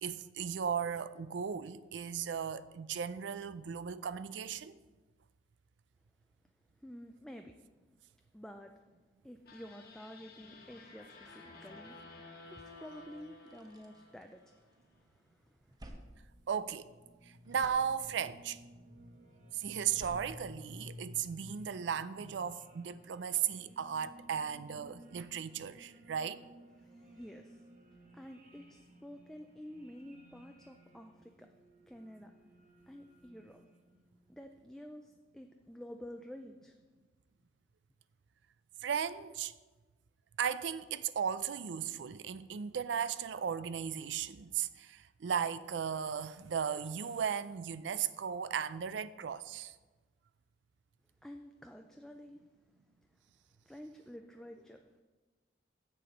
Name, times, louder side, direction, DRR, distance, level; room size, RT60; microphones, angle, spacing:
voice 1, 0.0-4.8 16.5-16.9 17.3-18.6 19.5-26.4 38.8-39.5 40.4-49.8, right 7 dB, 90° right, 0.4 m, -36 dB
voice 2, 6.8-7.5 8.3-8.7 9.2-12.0 12.5-15.8 26.8-27.7 28.1-31.5 31.9-32.3 32.9-33.6 34.3-36.7 51.2-52.4 53.7-55.0, equal, 5° left, 0.3 m, -50 dB
sound 1, 9.5-14.7, left 3 dB, 55° left, 1.2 m, -54 dB
sound 2, 12.8-12.9 13.2-14.9 15.3-17.1 17.4-18.5 19.7-21.4, right 1 dB, 20° right, 0.8 m, -55 dB
sound 3, 16.2-34.2, equal, 45° right, 1.3 m, -56 dB
7.8 x 6.9 x 5.0 m
head